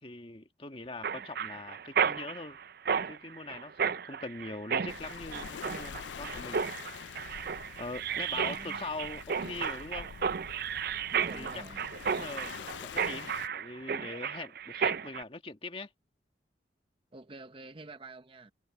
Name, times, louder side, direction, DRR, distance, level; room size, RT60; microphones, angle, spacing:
voice 1, 0.0-2.6 3.1-6.7 7.8-10.1 11.3-11.6 12.2-15.9, left 3 dB, 30° left, 1.8 m, -42 dB
Mechanisms, 1.0-15.2, right 7 dB, 55° right, 0.5 m, -33 dB
Waves surf, 4.9-13.5, left 8 dB, 85° left, 0.4 m, -45 dB
voice 2, 8.2-8.8 11.1-11.8 17.1-18.5, right 2 dB, 30° right, 0.8 m, -48 dB
head